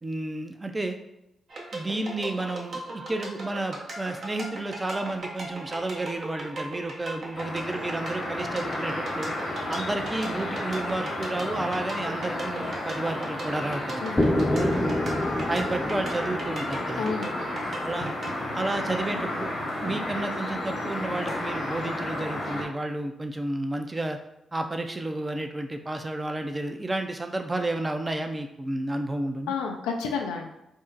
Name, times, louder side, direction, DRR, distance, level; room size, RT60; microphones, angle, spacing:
voice 1, 0.0-1.0 1.7-9.4 9.7-15.0 15.5-17.1 17.8-18.1 18.5-19.5 19.8-24.2 24.5-29.5, right 2 dB, 25° right, 5 dB, 0.5 m, -31 dB
sound 1, 1.5-18.3, right 2 dB, 60° right, 0.7 m, -38 dB
sound 2, 7.3-22.6, left 1 dB, 60° left, 1.0 m, -32 dB
voice 2, 14.0-14.3 17.0-17.3 29.5-30.5, left 5 dB, 85° left, 2 dB, 0.4 m, -30 dB
sound 3, 14.2-18.1, left 1 dB, 25° left, 0.6 m, -28 dB
2.6 x 2.1 x 3.8 m, 0.86 s
hypercardioid pair, 40°, 0 cm